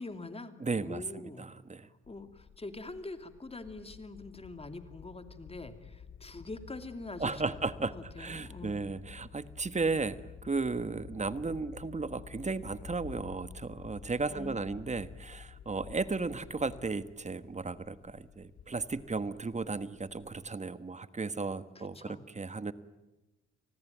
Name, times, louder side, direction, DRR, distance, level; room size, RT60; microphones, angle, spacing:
voice 1, 0.0-1.5 2.1-8.9 14.3-14.8 21.8-22.2, left 2 dB, 20° left, 8 dB, 2.6 m, -44 dB
voice 2, 0.6-1.9 7.2-22.7, right 4 dB, 25° right, 13 dB, 1.3 m, -35 dB
sound 1, 2.0-20.5, left 8 dB, 70° left, 2.4 m, -59 dB
sound 2, 3.7-16.9, left 7 dB, 50° left, 0.9 m, -51 dB
30.0 x 20.0 x 9.3 m, 1.0 s
cardioid pair, 90°, 30 cm